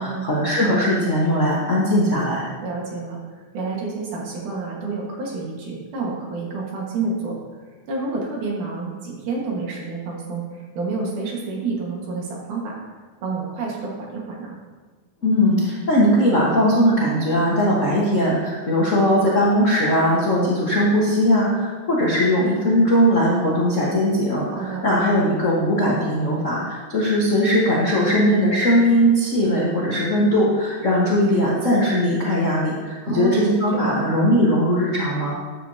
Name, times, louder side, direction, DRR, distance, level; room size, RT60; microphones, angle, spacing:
voice 1, 0.0-2.5 15.2-35.3, equal, 75° left, -6 dB, 0.7 m, -19 dB
voice 2, 2.6-3.2 3.5-7.4 7.9-12.8 13.2-14.6 24.5-24.8 33.0-34.1, right 3 dB, 75° right, -2 dB, 3.1 m, -29 dB
11.5 x 8.1 x 2.8 m, 1.4 s
omnidirectional pair, 3.7 m